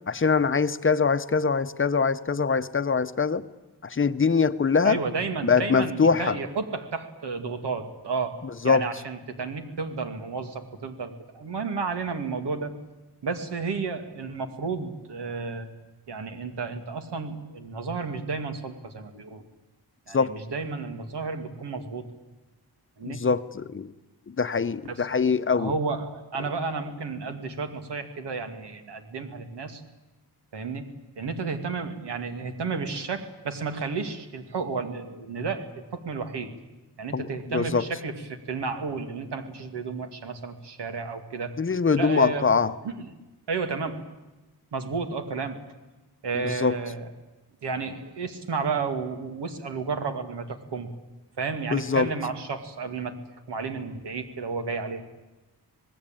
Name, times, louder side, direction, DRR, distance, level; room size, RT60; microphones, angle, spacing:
voice 1, 0.1-3.4 3.8-5.0 5.4-6.4 8.6-8.9 20.1-20.3 23.0-23.9 24.4-25.7 37.1-37.3 37.5-37.8 41.6-42.7 46.4-46.8 51.7-52.1, left 5 dB, 30° left, 12 dB, 0.8 m, -23 dB
voice 2, 4.8-12.7 13.2-15.7 16.1-19.4 20.1-22.1 23.0-23.2 24.9-25.2 25.6-29.8 30.5-30.9 31.2-36.5 37.0-41.6 42.0-42.5 42.8-43.1 43.5-44.0 44.7-45.6 46.2-47.1 47.6-50.9 51.4-53.2 53.5-55.0, right 4 dB, 85° right, 7 dB, 2.4 m, -32 dB
26.0 x 19.0 x 9.0 m, 1.1 s
wide cardioid pair, 135°, 40 cm